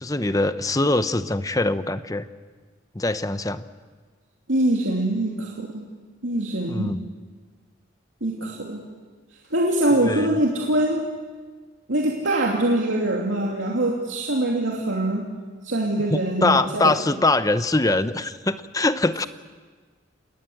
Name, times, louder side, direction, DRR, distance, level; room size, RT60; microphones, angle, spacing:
voice 1, 0.0-2.3 2.9-3.6 6.7-7.0 10.1-10.4 16.1-19.3, left 2 dB, 20° left, 11 dB, 0.8 m, -23 dB
voice 2, 4.5-5.8 6.2-6.9 8.2-8.8 9.5-11.0 11.9-15.3 15.6-16.9, right 1 dB, 85° right, -2 dB, 2.8 m, -23 dB
29.0 x 19.5 x 7.9 m, 1.5 s
head